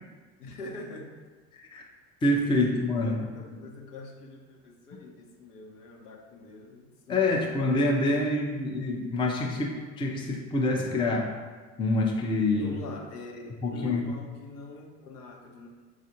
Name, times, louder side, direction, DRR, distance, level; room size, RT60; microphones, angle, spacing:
voice 1, 0.4-1.1 3.0-7.7 12.5-15.7, left 2 dB, 70° left, -1 dB, 0.9 m, -44 dB
voice 2, 1.5-1.8 2.2-3.2 7.1-11.3 11.8-12.7 13.6-14.0, left 2 dB, 10° left, -1 dB, 0.5 m, -26 dB
7.2 x 2.4 x 2.8 m, 1.4 s
figure-of-eight pair, 70°, 48 cm